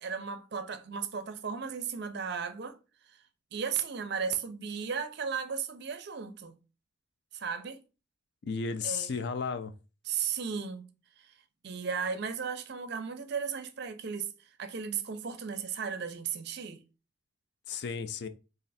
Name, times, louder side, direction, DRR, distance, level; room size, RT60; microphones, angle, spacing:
voice 1, 0.0-2.8 3.1-3.2 3.5-6.6 7.3-7.8 8.8-9.1 10.1-10.9 11.2-11.3 11.6-16.8, right 6 dB, 50° right, 0.4 m, -35 dB
voice 2, 8.4-9.7 17.7-18.3, left 5 dB, 50° left, 0.4 m, -33 dB
3.2 x 2.4 x 4.0 m
head